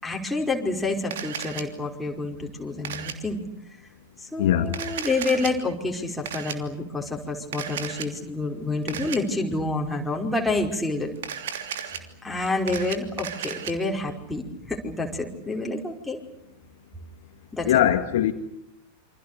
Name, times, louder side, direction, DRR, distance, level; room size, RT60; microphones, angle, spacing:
voice 1, 0.0-3.4 4.2-11.1 12.2-16.2 17.5-17.8, left 2 dB, 5° left, 5.1 m, -28 dB
Camera, 1.1-1.6 2.8-3.1 4.7-5.5 6.3-6.6 7.5-8.1 8.9-9.2 11.2-12.0 12.5-13.7, right 8 dB, 60° right, 3.0 m, -34 dB
voice 2, 4.4-4.8 17.7-18.3, left 11 dB, 55° left, 1.9 m, -21 dB
28.5 x 26.0 x 6.8 m
figure-of-eight pair, 90°, 0 cm